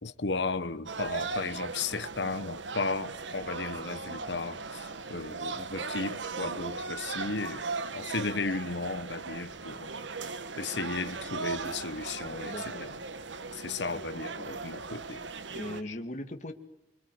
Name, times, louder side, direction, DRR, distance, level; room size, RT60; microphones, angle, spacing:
voice 1, 0.0-7.7 7.9-10.0 10.2-13.0 13.5-15.2 15.8-16.0, left 3 dB, 65° left, 1.1 m, -35 dB
sound 1, 0.9-15.8, right 4 dB, 80° right, 1.4 m, -38 dB
voice 2, 12.4-12.9 13.9-14.0 15.5-16.5, left 1 dB, 40° left, 2.4 m, -39 dB
25.0 x 24.5 x 9.5 m
head